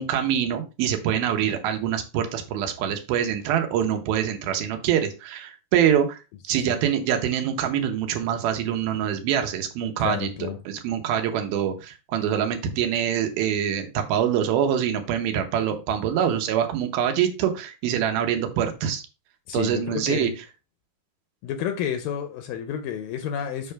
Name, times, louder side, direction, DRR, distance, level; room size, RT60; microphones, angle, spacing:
voice 1, 0.0-6.2 6.5-19.0 19.5-20.3, right 9 dB, 85° right, 2.8 m, -25 dB
voice 2, 10.0-10.6 19.5-20.3 21.4-23.7, left 9 dB, 80° left, 2.2 m, -30 dB
7.3 x 3.3 x 5.6 m
omnidirectional pair, 4.2 m